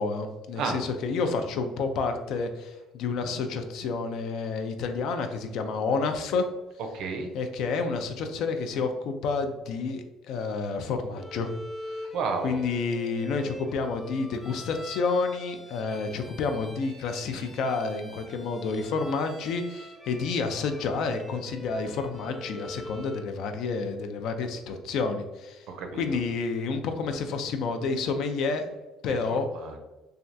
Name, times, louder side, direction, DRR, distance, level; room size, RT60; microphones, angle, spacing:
voice 1, 0.0-6.4 7.3-11.5 11.8-12.1 12.4-25.7 25.9-28.7 29.0-29.5, left 4 dB, 70° left, 6 dB, 0.3 m, -29 dB
voice 2, 6.9-7.3 12.1-12.6 25.7-26.2 29.3-29.8, right 4 dB, 70° right, 4 dB, 0.5 m, -32 dB
Bowed string instrument, 11.2-23.3, equal, ahead, 0.5 m, -44 dB
3.3 x 2.3 x 2.6 m, 1.1 s
cardioid pair, 100°, 0 cm